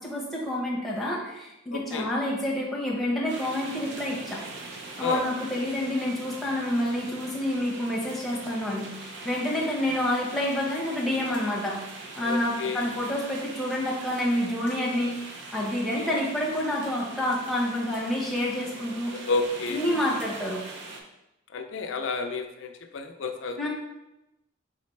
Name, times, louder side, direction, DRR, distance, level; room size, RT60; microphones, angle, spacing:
voice 1, 0.0-4.4 5.0-11.8 12.2-15.1 15.5-19.1 19.7-20.6 23.6-23.7, left 1 dB, ahead, -5 dB, 0.9 m, -28 dB
voice 2, 1.7-2.1 5.0-5.2 9.5-9.7 12.2-12.9 15.9-16.1 19.1-19.8 21.5-23.7, left 3 dB, 65° left, 6 dB, 0.5 m, -31 dB
sound 1, 3.3-21.0, right 3 dB, 55° right, 0.6 m, -42 dB
4.1 x 4.0 x 3.2 m, 0.93 s
head